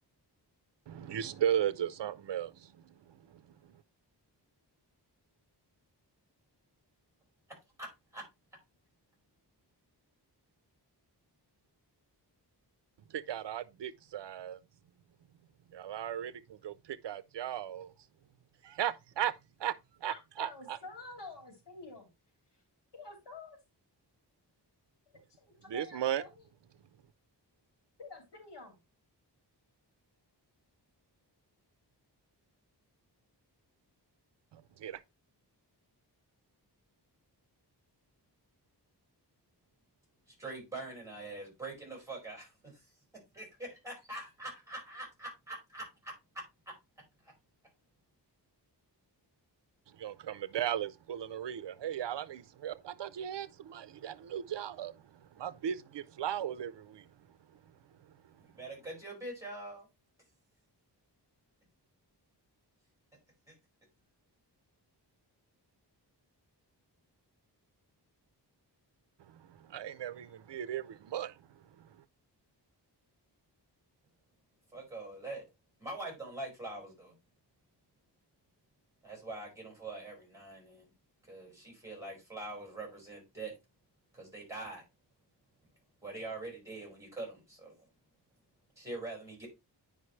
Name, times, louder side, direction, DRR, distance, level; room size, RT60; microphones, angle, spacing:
voice 1, 0.9-2.9 13.1-14.6 15.7-17.9 18.6-19.3 19.6-19.7 20.0-20.8 25.7-26.2 34.5-35.0 50.0-54.9 55.3-57.1 69.3-71.4, right 10 dB, 75° right, 0.6 m, -36 dB
voice 2, 7.8-8.2 40.3-42.9 43.3-46.1 58.4-59.9 63.5-63.6 74.7-75.4 75.8-77.2 79.0-80.9 81.2-83.5 84.1-84.8 86.0-87.8 88.8-89.5, right 2 dB, 5° right, 5.1 m, -44 dB
voice 3, 20.1-22.1 22.9-23.6 25.7-26.4 28.0-28.8, left 3 dB, 70° left, 3.0 m, -48 dB
9.7 x 5.2 x 3.1 m
wide cardioid pair, 150°, 43 cm